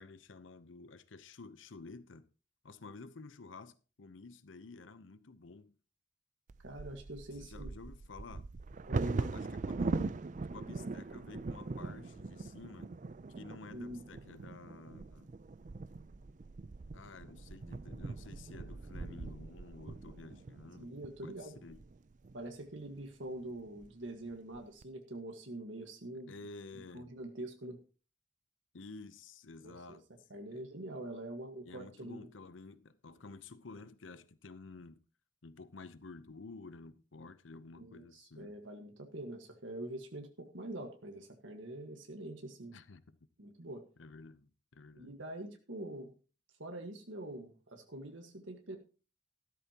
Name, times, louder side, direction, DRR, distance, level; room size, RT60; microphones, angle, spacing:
voice 1, 0.0-2.3 2.6-5.7 7.4-8.5 9.0-10.2 10.5-12.9 13.4-15.4 16.9-20.9 21.2-21.8 26.1-27.1 28.7-30.6 31.6-35.0 35.4-38.5 42.7-43.0 44.0-45.2, left 3 dB, 85° left, 0.8 m, -51 dB
Bird vocalization bird call bird song / Wind / Thunder, 6.5-22.4 23.0-23.1 23.5-23.9 24.3-24.8, right 3 dB, 40° right, 0.4 m, -41 dB
voice 2, 6.6-7.7 8.9-9.5 13.7-14.0 20.8-21.5 22.3-26.3 26.9-27.8 29.6-30.0 30.3-32.3 37.8-42.8 43.4-43.8 44.9-46.1 46.6-48.8, right 1 dB, 80° right, 1.6 m, -45 dB
13.5 x 12.0 x 2.9 m
head